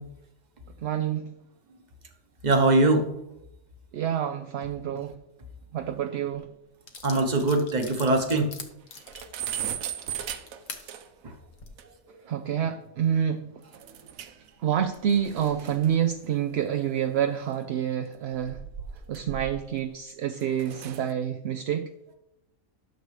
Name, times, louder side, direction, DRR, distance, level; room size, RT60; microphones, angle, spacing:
voice 1, 0.8-1.3 3.9-5.1 5.7-6.5 12.3-13.5 14.6-18.6 19.1-21.9, right 9 dB, 65° right, 7 dB, 0.7 m, -28 dB
voice 2, 2.4-3.1 7.0-8.5 11.2-11.3, right 2 dB, 35° right, 5 dB, 1.1 m, -22 dB
sound 1, 6.3-6.4 6.9-10.8 11.4-11.7, left 5 dB, 70° left, 1.4 m, -43 dB
sound 2, 7.0-7.1 7.4-7.5 7.8-7.9 8.3-8.4 8.7-11.3 11.8-11.9 13.7-14.5 14.8-17.4 18.2-19.9 20.3-21.1, right 9 dB, 85° right, 1.1 m, -38 dB
12.0 x 6.7 x 3.3 m, 0.86 s
omnidirectional pair, 1.4 m